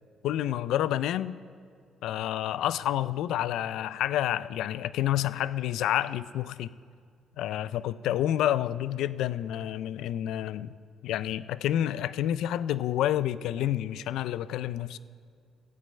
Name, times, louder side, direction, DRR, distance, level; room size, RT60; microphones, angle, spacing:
voice 1, 0.2-1.4 2.0-6.7 7.4-10.7 11.0-15.0, left 12 dB, 85° left, 0.3 m, -29 dB
14.5 x 5.4 x 8.5 m
cardioid pair, 90°, 0 cm